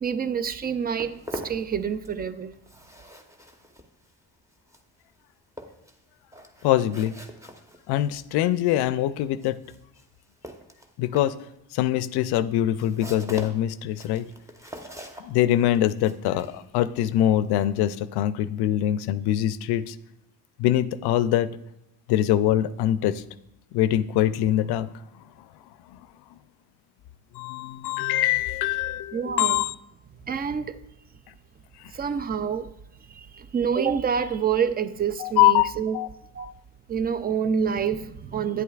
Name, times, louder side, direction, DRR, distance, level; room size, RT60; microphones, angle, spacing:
voice 1, 0.0-2.5 29.1-29.6 30.2-30.8 31.9-32.7 33.0-36.0 36.3-36.5 36.9-38.6, right 7 dB, 25° right, 0.4 m, -27 dB
Walk footsteps, 0.5-2.3 2.5-17.9, equal, 5° right, 0.9 m, -44 dB
voice 2, 6.6-7.2 7.9-9.6 11.0-11.3 11.7-14.3 15.2-20.0 20.6-21.5 22.1-23.2 23.7-24.9 25.9-26.0 27.3-29.7 35.2-35.7 35.9-36.1 36.4-36.5, left 12 dB, 70° left, 0.5 m, -23 dB
9.4 x 8.2 x 2.4 m
supercardioid pair, 85°, 41 cm